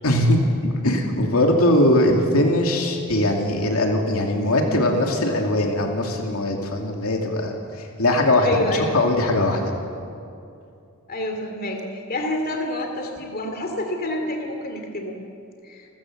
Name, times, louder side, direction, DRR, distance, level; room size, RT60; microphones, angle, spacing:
voice 1, 0.0-0.4 0.8-9.7, left 1 dB, 80° left, 2 dB, 2.6 m, -20 dB
voice 2, 8.4-9.0 11.1-15.2 15.7-15.8, left 1 dB, 45° left, 3 dB, 2.5 m, -28 dB
29.0 x 14.5 x 7.5 m, 2.6 s
head